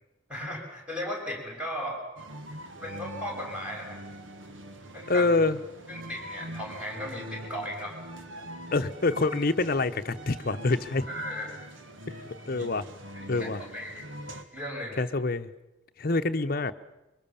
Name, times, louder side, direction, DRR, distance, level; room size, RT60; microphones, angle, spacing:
voice 1, 0.3-2.0 2.8-4.0 4.9-5.3 5.9-8.0 11.1-11.6 12.6-12.7 13.1-14.1 14.5-15.0, equal, 5° right, -1 dB, 6.1 m, -36 dB
sound 1, 2.2-14.4, right 1 dB, 85° right, 1.9 m, -43 dB
voice 2, 5.1-5.6 8.7-11.1 12.1-12.9 13.3-13.6 15.0-15.5 16.0-16.7, left 3 dB, 50° left, 8 dB, 0.9 m, -26 dB
23.5 x 23.5 x 7.1 m, 0.99 s
head